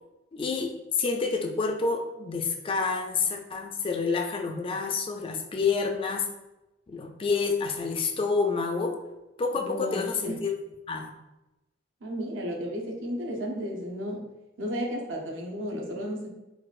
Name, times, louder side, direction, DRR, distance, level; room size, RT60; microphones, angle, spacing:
voice 1, 0.3-6.3 6.9-9.0 9.4-10.5 10.9-11.1, left 4 dB, 30° left, 3 dB, 0.3 m, -28 dB
voice 2, 9.5-10.5 12.0-14.2 14.6-16.3, equal, 75° right, 0 dB, 0.7 m, -33 dB
4.1 x 2.3 x 2.4 m, 0.99 s
head